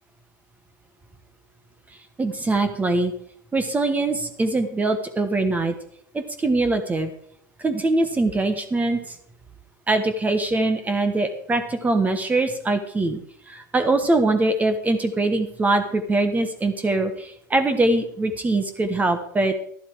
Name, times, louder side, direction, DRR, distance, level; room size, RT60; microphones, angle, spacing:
voice 1, 2.2-3.1 3.5-5.7 6.1-7.1 7.6-9.1 9.9-13.2 13.5-19.5, right 2 dB, 15° right, 8 dB, 1.3 m, -22 dB
12.0 x 11.5 x 4.7 m, 0.64 s
hypercardioid pair, 105°, 11 cm